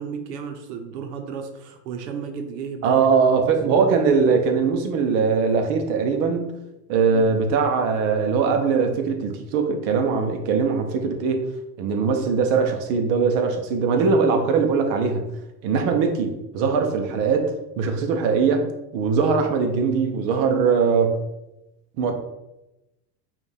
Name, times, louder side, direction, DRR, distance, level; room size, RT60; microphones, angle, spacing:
voice 1, 0.0-3.1 3.5-3.6 7.1-7.3 13.9-14.5 16.8-16.9, right 6 dB, 80° right, 6 dB, 0.8 m, -34 dB
voice 2, 2.8-6.6 6.9-11.4 11.8-15.3 15.6-18.6 18.9-21.2 22.0-22.1, right 5 dB, 45° right, 5 dB, 0.7 m, -21 dB
5.0 x 2.5 x 3.3 m, 0.95 s
supercardioid pair, 150°, 48 cm